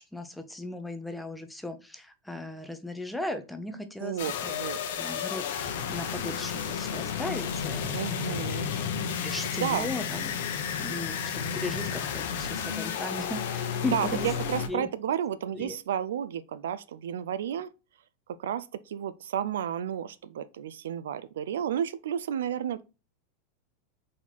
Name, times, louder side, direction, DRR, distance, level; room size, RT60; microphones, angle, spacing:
voice 1, 0.1-4.2 5.0-8.2 9.2-14.3 14.7-14.9 15.5-15.8, left 2 dB, 5° left, 0.6 m, -37 dB
voice 2, 4.0-4.8 7.9-8.7 9.5-9.9 13.9-17.7 18.4-22.8, right 9 dB, 90° right, 0.4 m, -32 dB
sound 1, 4.2-14.7, left 7 dB, 75° left, 0.8 m, -32 dB
4.2 x 2.9 x 4.0 m
supercardioid pair, 140°, 0 cm